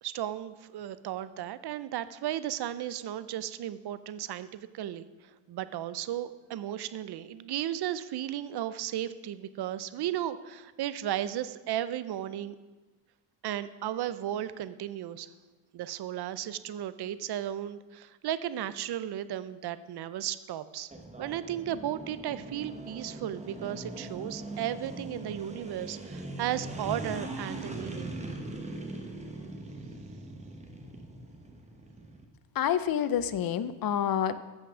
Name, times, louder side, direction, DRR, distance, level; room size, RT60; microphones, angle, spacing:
voice 1, 0.0-5.1 5.5-12.5 13.4-15.3 15.7-20.9 21.2-28.2, right 11 dB, 50° right, 14 dB, 0.6 m, -35 dB
sound 1, 20.9-32.2, right 2 dB, 15° right, 1.0 m, -41 dB
voice 2, 32.6-34.4, left 9 dB, 45° left, 14 dB, 0.6 m, -28 dB
14.5 x 5.9 x 6.1 m, 1.2 s
cardioid pair, 160°, 50 cm